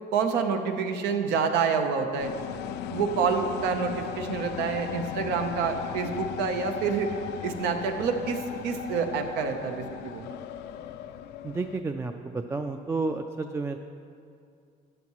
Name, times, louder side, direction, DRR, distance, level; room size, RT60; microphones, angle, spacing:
voice 1, 0.1-2.3 2.9-7.1 7.4-10.2, right 5 dB, 90° right, 5 dB, 0.9 m, -27 dB
sound 1, 2.2-11.8, left 9 dB, 80° left, 0.4 m, -37 dB
voice 2, 11.4-13.8, right 3 dB, 15° right, 6 dB, 0.3 m, -31 dB
13.0 x 9.9 x 3.1 m, 2.4 s
cardioid pair, 110°, 17 cm